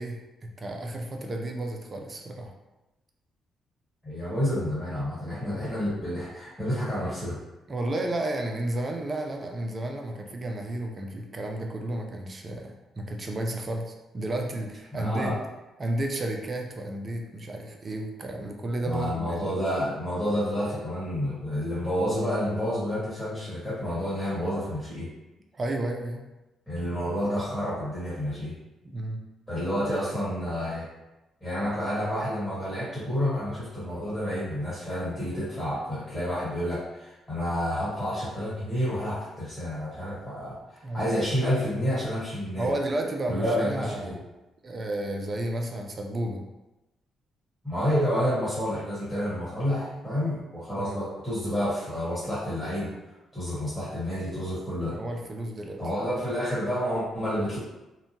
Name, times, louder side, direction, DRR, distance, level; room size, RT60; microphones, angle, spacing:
voice 1, 0.0-2.5 7.7-15.4 15.8-19.5 25.5-26.3 28.8-29.2 40.8-41.1 42.5-44.2 44.6-46.4 50.7-51.0 54.9-55.8, right 1 dB, 35° right, 2 dB, 0.4 m, -32 dB
voice 2, 4.0-7.4 14.9-15.4 18.8-25.1 26.7-28.5 29.5-30.9 31.4-42.7 43.3-44.1 47.6-52.9 53.3-55.0 55.8-57.6, equal, 10° left, -10 dB, 1.2 m, -29 dB
2.7 x 2.1 x 2.7 m, 1.0 s
cardioid pair, 90°, 0 cm